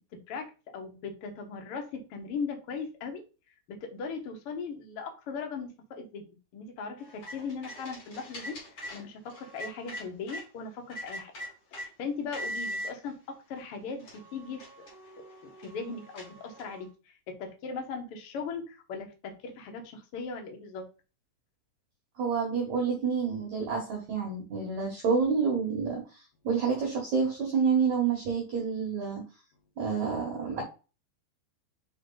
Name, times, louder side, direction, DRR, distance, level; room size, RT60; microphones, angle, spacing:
voice 1, 0.1-3.2 3.7-8.6 8.9-11.3 11.7-14.7 15.4-16.9 17.3-20.9, left 5 dB, 70° left, 3 dB, 1.3 m, -38 dB
sound 1, 7.0-10.4 10.9-11.9 12.3-12.9 13.6-13.7 14.0-16.8, equal, 35° left, 2.9 m, -41 dB
voice 2, 22.2-26.0 26.4-29.2 29.8-30.6, right 5 dB, 55° right, -1 dB, 2.4 m, -28 dB
5.6 x 5.3 x 4.0 m, 0.32 s
omnidirectional pair, 4.9 m